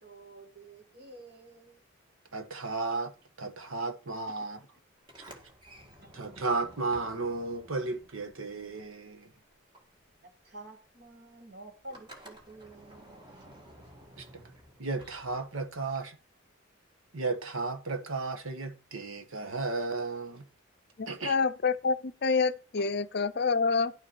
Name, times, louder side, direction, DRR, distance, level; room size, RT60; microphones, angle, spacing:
voice 1, 0.0-1.8 6.0-6.1 10.2-13.7, right 2 dB, 50° right, 2.0 m, -50 dB
voice 2, 2.3-3.1 3.4-4.6 6.1-9.3 14.2-14.4 14.8-16.2 17.1-20.5 21.1-21.4, right 3 dB, 75° right, 1.3 m, -34 dB
Sliding door, 5.0-9.3 9.5-15.9, right 1 dB, 20° right, 1.8 m, -53 dB
voice 3, 21.0-23.9, left 4 dB, 50° left, 0.5 m, -27 dB
11.0 x 6.5 x 4.6 m
head